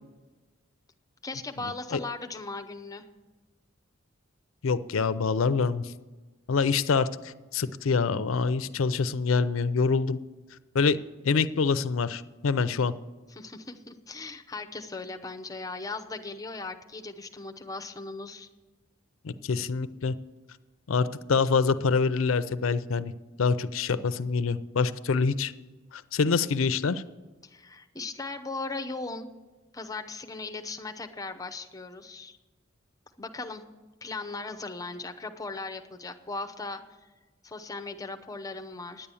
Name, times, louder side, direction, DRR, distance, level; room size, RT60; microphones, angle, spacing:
voice 1, 1.2-3.1 13.3-18.5 27.4-29.3 29.7-32.4 33.2-33.6 34.0-37.1 37.4-39.1, left 3 dB, 20° left, 5 dB, 0.7 m, -38 dB
voice 2, 4.6-5.9 6.5-10.2 10.7-11.0 11.2-12.9 19.2-20.2 20.9-23.1 23.4-25.5 25.9-27.0, left 5 dB, 80° left, 14 dB, 0.5 m, -26 dB
10.0 x 8.7 x 7.0 m, 1.2 s
head